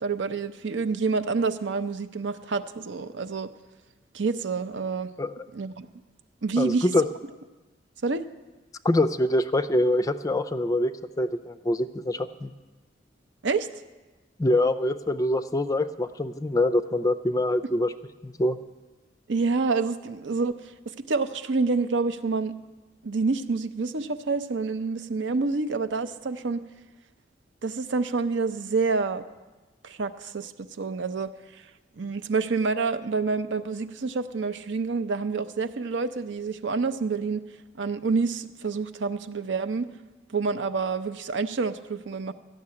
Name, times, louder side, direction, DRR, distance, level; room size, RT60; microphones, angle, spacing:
voice 1, 0.0-3.5 4.1-5.1 5.5-5.9 6.4-6.9 8.0-8.3 13.4-13.7 19.3-20.6 21.0-22.5 23.0-26.6 27.6-29.2 29.8-30.5 30.8-31.3 32.0-37.4 37.8-39.9 40.3-42.3, right 4 dB, 75° right, 9 dB, 0.6 m, -27 dB
voice 2, 6.6-7.1 8.8-12.5 14.4-17.9 18.2-18.6, left 1 dB, 20° left, 12 dB, 0.4 m, -25 dB
13.0 x 6.7 x 9.7 m, 1.2 s
head